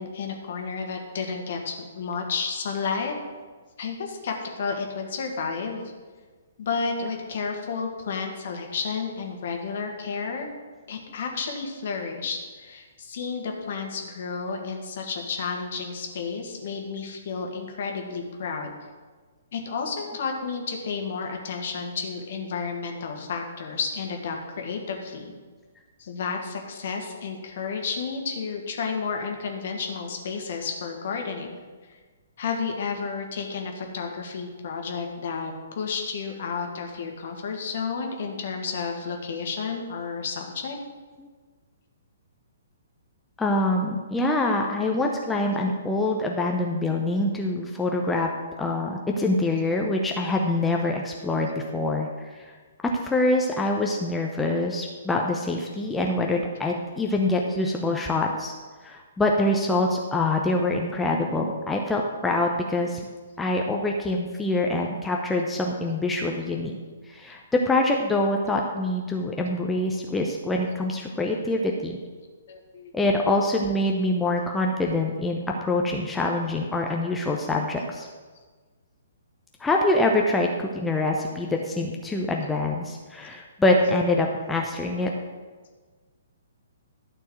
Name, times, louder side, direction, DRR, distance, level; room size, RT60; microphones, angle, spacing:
voice 1, 0.0-3.1 3.8-5.8 6.6-10.5 10.9-18.7 19.5-25.3 26.0-31.5 32.4-40.8 71.4-71.5 72.5-72.9, left 5 dB, 50° left, 2 dB, 1.7 m, -31 dB
voice 2, 43.4-48.3 48.6-52.5 53.0-58.5 58.8-63.0 63.4-66.8 67.0-72.0 72.9-78.1 79.6-85.1, left 2 dB, 5° left, 0 dB, 0.8 m, -25 dB
12.5 x 4.5 x 7.5 m, 1.4 s
figure-of-eight pair, 120°, 0 cm